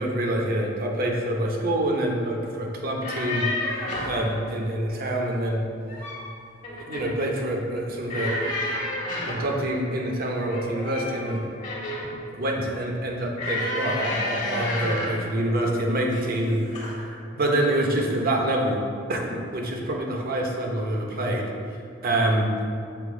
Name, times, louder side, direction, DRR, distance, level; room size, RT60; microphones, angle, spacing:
voice 1, 0.0-5.7 6.9-8.4 9.3-11.4 12.3-21.5 22.0-22.5, right 1 dB, 50° right, 0 dB, 0.8 m, -26 dB
sound 1, 2.9-4.2 5.7-6.3 6.6-7.2 8.1-9.5 10.5-12.2 13.4-15.2 16.1-16.4 16.7-17.0, left 1 dB, 40° left, 1.3 m, -30 dB
6.8 x 2.9 x 4.8 m, 2.3 s
head